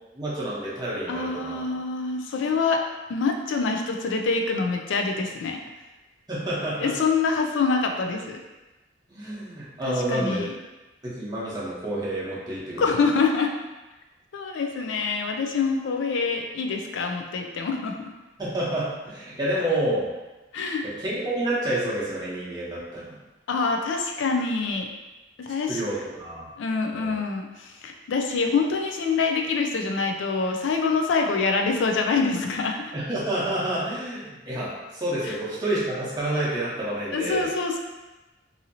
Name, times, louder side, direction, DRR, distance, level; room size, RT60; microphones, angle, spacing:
voice 1, 0.1-1.6 6.3-6.9 9.1-10.4 11.0-13.0 18.4-20.1 21.0-23.0 25.7-26.5 26.9-27.1 32.9-37.5, right 1 dB, 20° right, -8 dB, 0.8 m, -29 dB
voice 2, 1.1-2.8 3.1-5.6 6.8-8.4 9.8-10.6 12.8-13.5 14.3-18.0 20.5-20.9 23.5-24.9 25.4-25.8 26.6-32.9 35.2-35.4 37.1-37.8, left 4 dB, 75° left, 3 dB, 0.4 m, -25 dB
2.8 x 2.7 x 2.7 m, 1.1 s
head